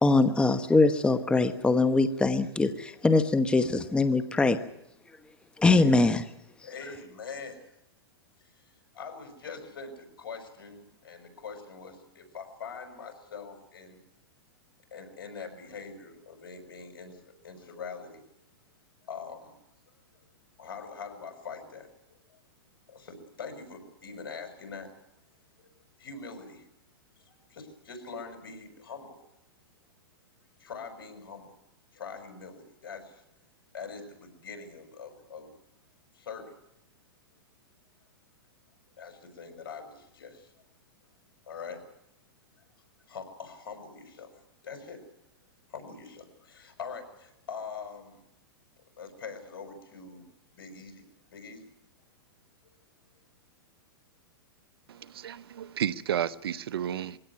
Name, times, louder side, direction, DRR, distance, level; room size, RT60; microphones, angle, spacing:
voice 1, 0.0-4.6 5.6-6.2, left 3 dB, 10° left, 10 dB, 1.0 m, -23 dB
voice 2, 6.6-7.6 8.4-9.9 10.2-14.0 14.9-18.2 19.1-19.5 20.1-20.2 20.6-22.4 22.9-24.9 25.6-25.7 26.0-26.7 27.2-29.2 30.6-31.5 31.9-33.2 33.7-35.5 36.1-36.5 39.0-40.5 41.5-41.8 43.1-45.0 45.7-48.2 49.0-50.2 50.5-51.7, left 5 dB, 75° left, 6 dB, 5.7 m, -43 dB
voice 3, 54.9-57.2, right 10 dB, 80° right, 17 dB, 0.9 m, -32 dB
22.0 x 17.0 x 9.5 m, 0.83 s
hypercardioid pair, 125°, 12 cm